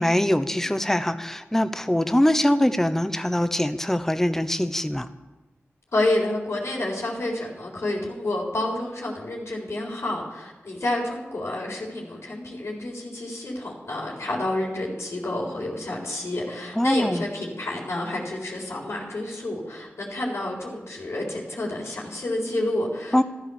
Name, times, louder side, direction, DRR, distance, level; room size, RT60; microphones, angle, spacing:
voice 1, 0.0-5.1 16.7-17.2 23.1-23.2, left 1 dB, 10° left, 10 dB, 0.9 m, -23 dB
voice 2, 5.9-23.2, left 1 dB, 70° left, -2 dB, 4.2 m, -29 dB
14.5 x 13.5 x 7.2 m, 1.2 s
wide cardioid pair, 100°, 5 cm